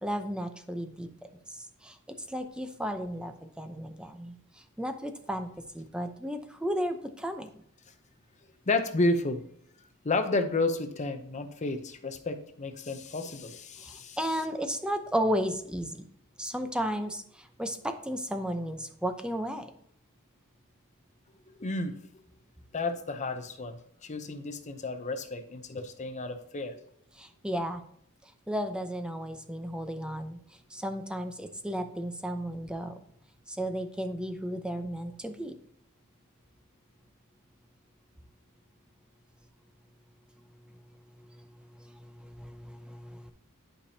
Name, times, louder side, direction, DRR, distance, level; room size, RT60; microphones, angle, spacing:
voice 1, 0.0-1.1 1.8-1.9 2.3-4.3 4.8-5.5 5.7-7.5 14.2-16.0 16.4-17.2 17.6-19.7 27.2-27.8 28.5-30.4 30.7-32.9 33.5-35.5 42.2-43.3, equal, 5° right, 7 dB, 0.7 m, -33 dB
voice 2, 8.7-9.4 10.0-14.2 21.6-22.0 22.7-26.8, left 2 dB, 35° left, 8 dB, 0.7 m, -31 dB
11.5 x 5.1 x 2.8 m, 0.68 s
head